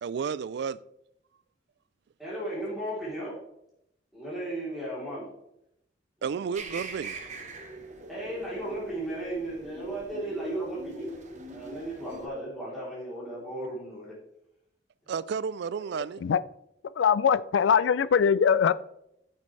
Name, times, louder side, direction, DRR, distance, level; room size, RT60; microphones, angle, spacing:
voice 1, 0.0-0.8 6.2-7.2 15.1-16.2, right 6 dB, 60° right, 0.3 m, -32 dB
voice 2, 2.2-3.4 4.1-5.3 6.3-6.5 8.1-11.1 11.4-14.2 15.0-15.1, right 1 dB, ahead, 3.3 m, -35 dB
sound 1, 6.5-12.3, right 2 dB, 40° right, 1.0 m, -42 dB
voice 3, 17.0-18.7, left 7 dB, 70° left, 0.3 m, -22 dB
8.7 x 6.6 x 3.2 m
head